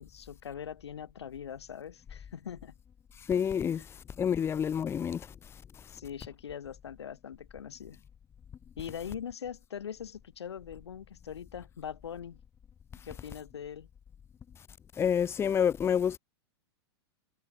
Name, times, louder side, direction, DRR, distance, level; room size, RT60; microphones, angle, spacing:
voice 1, 0.0-2.7 3.8-3.9 5.9-8.0 8.8-12.4 13.0-13.9, left 8 dB, 90° left, 1.9 m, -42 dB
voice 2, 3.3-5.3 15.0-16.2, left 8 dB, 20° left, 1.1 m, -28 dB
hypercardioid pair, 130°, 14 cm